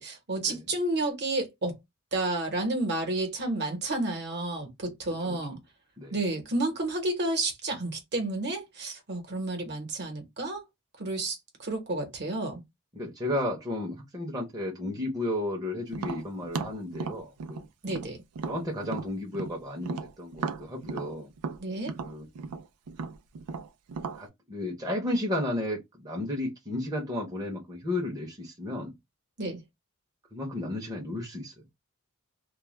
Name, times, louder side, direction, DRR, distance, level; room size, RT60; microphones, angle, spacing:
voice 1, 0.0-1.8 2.1-5.6 6.1-10.6 11.0-12.6 17.8-18.2 21.6-21.9 29.4-29.6, right 2 dB, 50° right, 0.9 m, -31 dB
voice 2, 12.9-17.6 18.5-21.3 22.0-22.3 24.1-28.9 30.3-31.6, left 1 dB, 15° right, 0.7 m, -33 dB
Tap, 15.9-19.5 19.8-24.2, right 5 dB, 85° right, 0.4 m, -36 dB
2.3 x 2.1 x 3.1 m
head